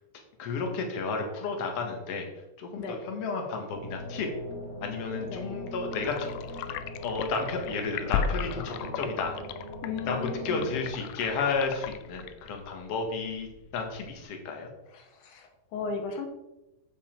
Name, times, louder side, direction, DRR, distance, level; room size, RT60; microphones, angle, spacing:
voice 1, 0.4-2.3 2.6-4.3 4.8-6.3 7.0-9.3 10.1-13.5 13.7-14.7, left 4 dB, 55° left, 3 dB, 2.0 m, -32 dB
sound 1, 3.7-10.9, left 1 dB, 30° left, 2.8 m, -40 dB
sound 2, 5.9-14.2, left 7 dB, 90° left, 2.4 m, -36 dB
voice 2, 9.8-10.7 14.9-16.3, left 4 dB, 70° left, 5 dB, 2.3 m, -36 dB
8.3 x 7.3 x 4.4 m, 0.96 s
omnidirectional pair, 4.2 m